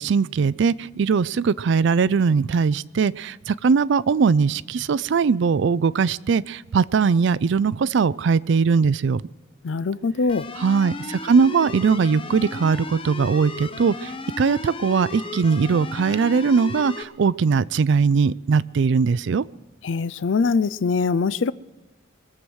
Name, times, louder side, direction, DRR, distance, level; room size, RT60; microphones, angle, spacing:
voice 1, 0.0-9.2 10.6-19.5, right 5 dB, 60° right, 0.4 m, -20 dB
voice 2, 9.6-10.5 19.8-21.5, left 4 dB, 65° left, 0.4 m, -22 dB
sound 1, 10.3-17.0, left 3 dB, 25° left, 0.7 m, -35 dB
22.5 x 7.9 x 6.3 m
head